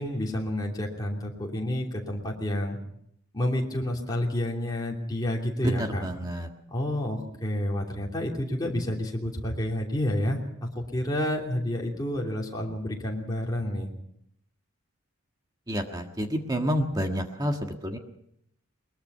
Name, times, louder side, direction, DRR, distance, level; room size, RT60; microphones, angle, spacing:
voice 1, 0.0-2.8 3.3-6.1 6.7-13.9, left 1 dB, 20° left, -2 dB, 3.1 m, -29 dB
voice 2, 5.6-6.5 15.7-18.0, equal, 20° right, 4 dB, 1.6 m, -29 dB
21.5 x 21.5 x 5.6 m, 0.72 s
head